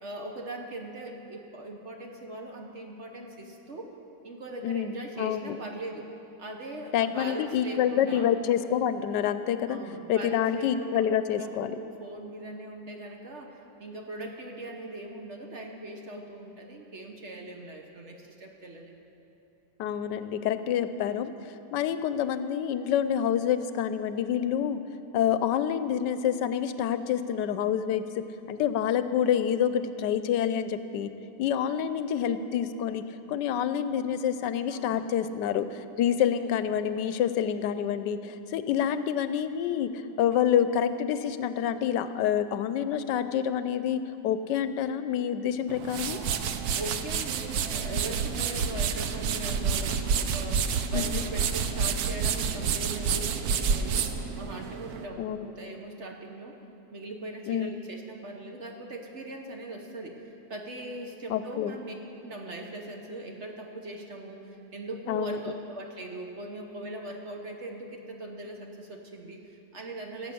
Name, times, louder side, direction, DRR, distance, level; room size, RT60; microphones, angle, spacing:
voice 1, 0.0-3.9 4.2-6.1 6.4-8.3 9.7-11.1 11.4-19.0 34.7-34.9 46.7-56.6 56.9-61.9 62.2-70.3, right 1 dB, 45° right, 2 dB, 1.2 m, -40 dB
voice 2, 4.6-5.6 6.9-9.8 10.1-11.8 19.8-21.3 21.7-24.8 25.1-31.1 31.4-46.2 50.9-51.2 55.2-55.5 57.5-57.8 61.3-61.7 65.1-65.4, left 9 dB, 85° left, 12 dB, 1.2 m, -27 dB
sound 1, 45.7-55.0, right 6 dB, 70° right, 1.1 m, -29 dB
16.5 x 7.9 x 6.9 m, 2.9 s
omnidirectional pair, 1.9 m